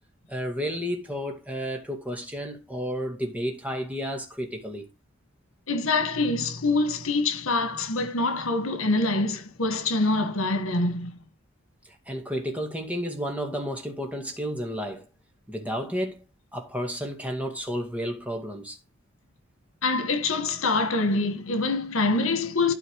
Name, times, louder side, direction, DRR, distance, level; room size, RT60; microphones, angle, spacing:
voice 1, 0.3-4.9 11.9-15.1 15.5-16.2 16.5-18.8, equal, 5° right, 2.2 m, -32 dB
voice 2, 5.7-11.1 19.8-22.7, left 3 dB, 85° left, 1.7 m, -25 dB
12.0 x 4.3 x 4.8 m
head